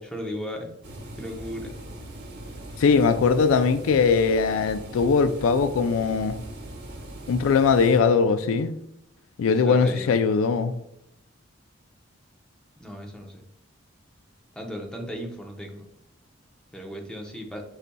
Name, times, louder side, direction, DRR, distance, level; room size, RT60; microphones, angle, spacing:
voice 1, 0.1-0.7 1.2-1.7 9.6-10.1 12.8-13.4 14.6-15.8 16.7-17.6, equal, 5° left, 0.7 m, -35 dB
sound 1, 0.8-8.0, right 1 dB, 55° right, 0.9 m, -40 dB
voice 2, 2.8-6.3 7.3-8.7 9.4-10.7, left 5 dB, 80° left, 0.3 m, -21 dB
5.0 x 4.0 x 2.2 m
head